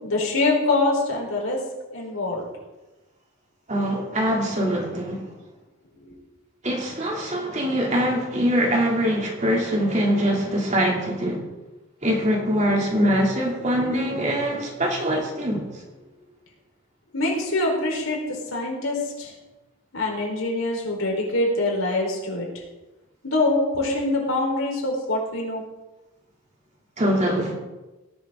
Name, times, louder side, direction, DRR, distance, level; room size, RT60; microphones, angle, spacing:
voice 1, 0.0-1.6 1.9-2.5 6.0-6.2 16.2-16.3 17.1-19.3 19.9-22.5 23.2-25.6, left 2 dB, 70° left, -1 dB, 4.3 m, -24 dB
voice 2, 3.7-5.3 6.6-11.4 12.0-15.7 27.0-27.6, equal, 35° right, -1 dB, 2.8 m, -23 dB
18.0 x 12.0 x 3.8 m, 1.1 s
head